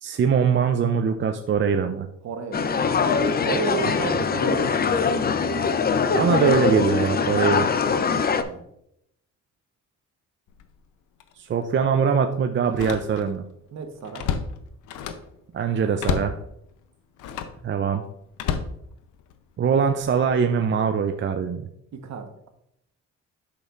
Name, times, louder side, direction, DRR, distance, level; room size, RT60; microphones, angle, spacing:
voice 1, 0.0-2.1 6.1-7.7 11.4-13.4 15.5-16.4 17.6-18.0 19.6-21.7, right 6 dB, 40° right, 6 dB, 0.5 m, -22 dB
voice 2, 2.2-2.9 3.4-5.2 6.0-6.3 8.4-8.6 13.7-14.3 21.9-22.3, right 5 dB, 60° right, 6 dB, 1.2 m, -32 dB
sound 1, 2.5-8.4, left 5 dB, 30° left, 0.6 m, -22 dB
Slam, 10.5-10.7 11.2-11.3 12.6-13.4 13.8-15.3 16.0-16.4 17.2-17.6 18.3-19.4 20.0-20.3, left 7 dB, 90° left, 0.7 m, -30 dB
8.5 x 6.3 x 2.5 m, 0.77 s
cardioid pair, 90°, 30 cm